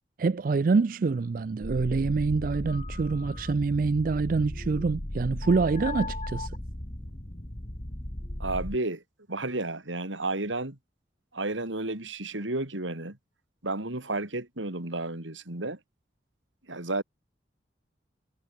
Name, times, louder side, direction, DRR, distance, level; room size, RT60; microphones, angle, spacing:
voice 1, 0.2-6.5, right 4 dB, 45° right, 0.4 m, -26 dB
sound 1, 1.6-8.8, left 1 dB, 35° left, 2.1 m, -36 dB
voice 2, 8.4-9.0 9.3-10.8 11.3-13.2 13.6-15.8 16.7-17.0, right 2 dB, 85° right, 3.5 m, -32 dB
head